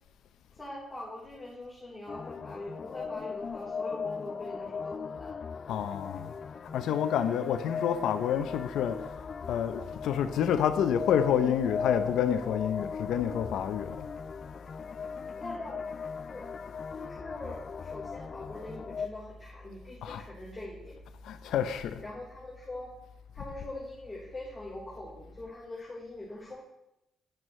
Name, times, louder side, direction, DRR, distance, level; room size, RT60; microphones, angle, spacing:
voice 1, 0.5-5.5 15.3-16.5 16.9-20.9 22.0-22.9 23.3-26.6, left 1 dB, 10° left, 3.7 m, -43 dB
sound 1, 2.1-19.1, left 5 dB, 45° left, 0.3 m, -38 dB
voice 2, 5.7-6.4 6.7-9.2 9.5-14.1 20.0-20.2 21.2-22.0, left 9 dB, 80° left, 0.6 m, -28 dB
sound 2, 8.3-25.4, left 2 dB, 55° right, 3.9 m, -52 dB
11.0 x 10.5 x 3.2 m
cardioid pair, 90°, 0 cm